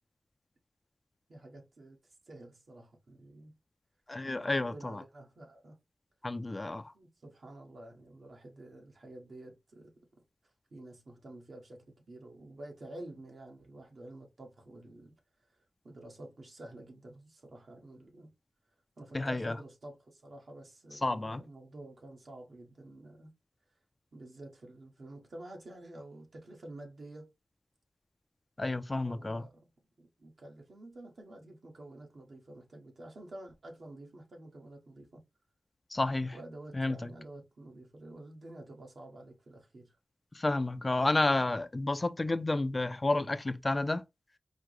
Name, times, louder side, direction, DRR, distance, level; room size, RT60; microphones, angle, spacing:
voice 1, 1.3-2.0 2.3-3.5 4.2-5.8 6.9-9.9 10.7-15.1 15.8-18.3 19.0-23.3 24.1-27.3 29.0-29.6 30.2-35.2 36.3-39.9, right 1 dB, 60° right, 1.4 m, -49 dB
voice 2, 4.1-5.0 6.2-6.9 19.1-19.6 20.9-21.4 28.6-29.4 35.9-36.4 36.7-37.1 40.3-44.0, left 2 dB, 30° left, 0.4 m, -31 dB
4.8 x 2.1 x 4.7 m
wide cardioid pair, 105°, 0 cm